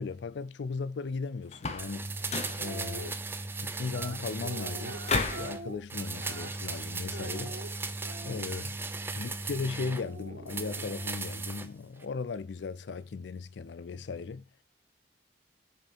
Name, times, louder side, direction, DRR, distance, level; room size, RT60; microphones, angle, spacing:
voice 1, 0.0-2.1 2.5-3.2 3.6-7.5 8.2-8.8 9.2-14.4, left 4 dB, 70° left, 0.4 m, -37 dB
sound 1, 1.5-1.9 2.2-2.6 5.1-5.5, left 4 dB, 35° left, 0.7 m, -31 dB
sound 2, 1.8-5.6 5.9-10.0 10.5-11.7 12.0-12.1, right 3 dB, 10° right, 0.3 m, -37 dB
sound 3, 2.5-3.1 3.9-6.8 7.1-8.6 9.8-11.2, right 3 dB, 70° right, 0.9 m, -44 dB
6.5 x 4.3 x 5.2 m
head